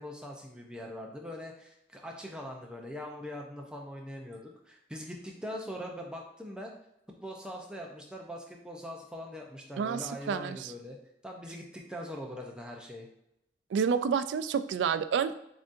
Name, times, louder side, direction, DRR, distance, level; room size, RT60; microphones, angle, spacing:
voice 1, 0.0-6.7 7.2-11.0 11.2-13.1, equal, 5° right, 0 dB, 0.5 m, -42 dB
voice 2, 9.8-10.7 13.7-15.3, right 6 dB, 90° right, 12 dB, 0.3 m, -29 dB
7.1 x 2.7 x 2.5 m, 0.82 s
head